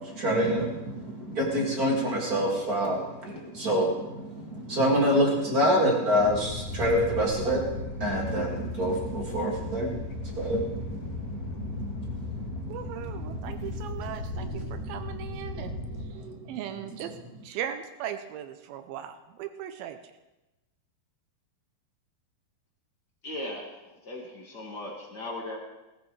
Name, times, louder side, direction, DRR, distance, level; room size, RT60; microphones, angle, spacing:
voice 1, 0.0-15.0 15.5-17.1, equal, 35° right, -1 dB, 1.5 m, -28 dB
sound 1, 6.2-16.1, left 2 dB, 65° left, 4.8 m, -36 dB
voice 2, 12.7-15.8 16.5-17.1 17.4-20.0, right 10 dB, 85° right, 9 dB, 2.1 m, -38 dB
voice 3, 23.2-25.6, left 1 dB, 45° left, -2 dB, 1.4 m, -38 dB
20.0 x 14.0 x 3.2 m, 1.0 s
omnidirectional pair, 5.1 m